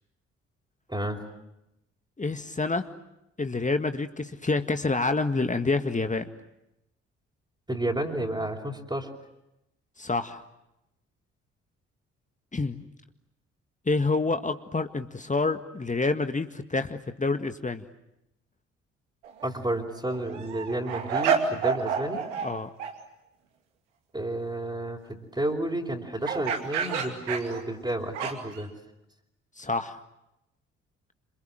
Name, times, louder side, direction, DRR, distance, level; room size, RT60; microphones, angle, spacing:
voice 1, 2.2-2.9 3.4-6.3 10.0-10.4 12.5-12.8 13.9-17.8 22.4-22.7 29.6-30.0, left 3 dB, 20° left, 9 dB, 1.8 m, -28 dB
voice 2, 7.7-9.1 19.4-22.2 24.1-28.7, right 1 dB, 10° right, -1 dB, 4.9 m, -31 dB
sound 1, 19.2-19.5 19.9-22.5 22.8-22.9 26.2-28.6, right 7 dB, 80° right, 2.6 m, -29 dB
27.5 x 27.0 x 7.8 m, 0.86 s
figure-of-eight pair, 40°, 36 cm